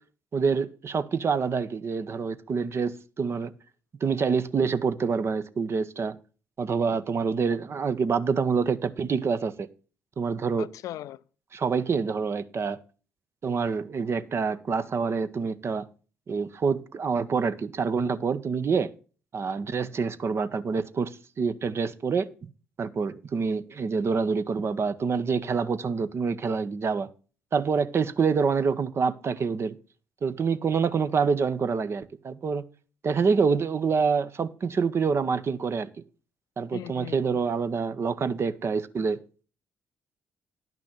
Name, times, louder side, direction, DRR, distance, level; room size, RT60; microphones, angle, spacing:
voice 1, 0.3-3.5 4.0-6.2 6.6-9.7 10.2-10.7 11.5-12.8 13.4-15.9 16.3-18.9 19.3-22.3 22.8-27.1 27.5-29.8 30.2-32.6 33.0-35.9 36.6-39.2, right 5 dB, 45° right, 0.8 m, -26 dB
voice 2, 10.6-11.2 36.7-37.5, left 13 dB, 65° left, 0.4 m, -39 dB
10.5 x 6.0 x 6.2 m
hypercardioid pair, 45°, 6 cm